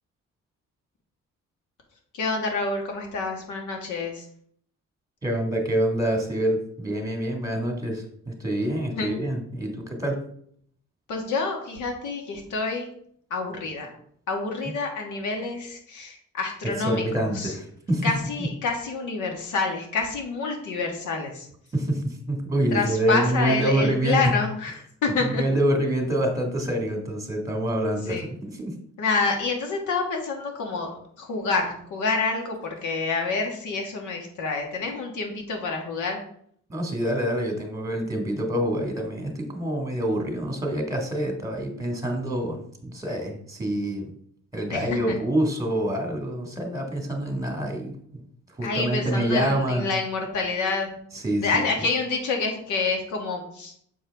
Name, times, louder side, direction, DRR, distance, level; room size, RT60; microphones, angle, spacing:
voice 1, 2.1-4.2 8.9-9.1 11.1-12.9 13.3-13.9 14.3-17.6 18.0-21.5 22.7-25.4 28.1-28.3 29.0-30.9 31.2-36.2 44.7-45.2 48.6-50.9 51.4-53.7, left 4 dB, 75° left, 2 dB, 1.6 m, -28 dB
voice 2, 5.2-10.2 16.7-18.1 18.4-18.5 21.7-24.3 25.2-28.7 36.7-44.1 44.5-47.9 48.6-49.9 51.2-51.6, right 1 dB, 10° right, 3 dB, 1.6 m, -26 dB
7.2 x 4.6 x 3.4 m, 0.64 s
cardioid pair, 90°, 30 cm